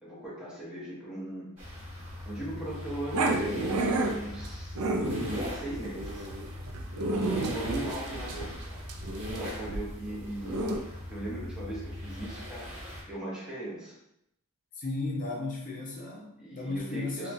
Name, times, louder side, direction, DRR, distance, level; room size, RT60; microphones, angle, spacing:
voice 1, 0.0-1.9 2.2-6.2 7.3-8.8 9.3-14.0 16.4-17.3, right 1 dB, 5° right, -8 dB, 0.8 m, -39 dB
sound 1, 1.6-13.0, left 1 dB, 30° right, 1.0 m, -41 dB
Growling, 3.1-10.8, right 2 dB, 85° right, 0.4 m, -31 dB
voice 2, 14.8-17.3, left 2 dB, 35° left, -1 dB, 0.5 m, -35 dB
2.7 x 2.3 x 2.6 m, 0.78 s
head